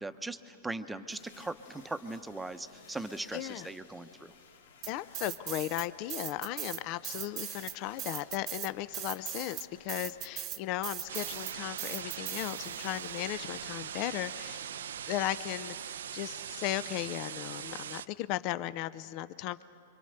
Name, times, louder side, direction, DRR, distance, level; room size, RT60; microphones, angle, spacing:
voice 1, 0.0-4.3, right 2 dB, 5° right, 9 dB, 0.9 m, -39 dB
sound 1, 1.1-14.5, left 5 dB, 85° left, 2.1 m, -58 dB
voice 2, 3.3-3.7 4.9-14.7 15.1-19.6, left 14 dB, 45° left, 15 dB, 0.6 m, -36 dB
sound 2, 4.8-5.8 6.1-12.9, right 13 dB, 35° right, 0.7 m, -39 dB
sound 3, 11.1-18.1, right 9 dB, 80° right, 0.5 m, -41 dB
27.5 x 24.0 x 6.7 m, 2.6 s
hypercardioid pair, 130°, 0 cm